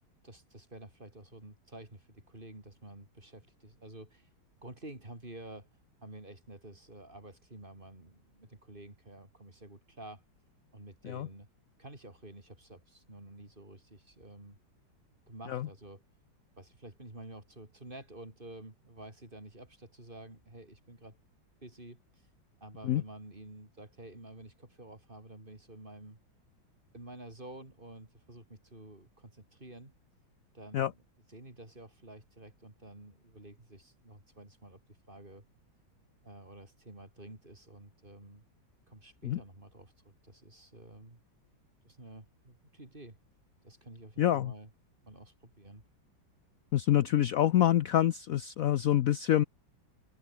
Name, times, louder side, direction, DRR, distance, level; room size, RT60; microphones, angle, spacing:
voice 1, 0.2-4.3 4.6-5.7 6.0-10.2 10.7-11.5 11.8-14.6 15.3-16.0 16.6-21.2 21.6-22.3 22.6-26.2 26.9-29.9 30.5-31.0 31.3-34.8 35.1-35.4 36.2-38.4 38.9-41.2 41.8-43.2 43.6-44.7 45.0-45.8, right 2 dB, 25° right, 4.6 m, -50 dB
voice 2, 44.2-44.5 46.7-49.4, left 12 dB, 75° left, 0.8 m, -26 dB
omnidirectional pair, 2.1 m